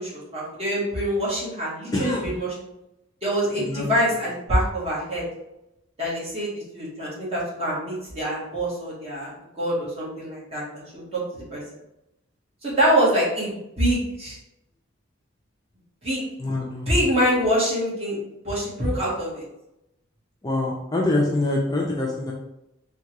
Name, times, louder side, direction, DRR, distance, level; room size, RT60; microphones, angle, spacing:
voice 1, 0.0-2.5 3.2-5.2 6.0-11.6 12.6-14.4 16.0-16.2 16.9-18.2 18.4-19.4, equal, 30° right, -6 dB, 1.4 m, -25 dB
voice 2, 1.9-2.2 3.5-3.9 16.4-16.9 20.4-22.3, left 2 dB, 20° left, -3 dB, 0.4 m, -25 dB
3.5 x 2.3 x 2.9 m, 0.86 s
head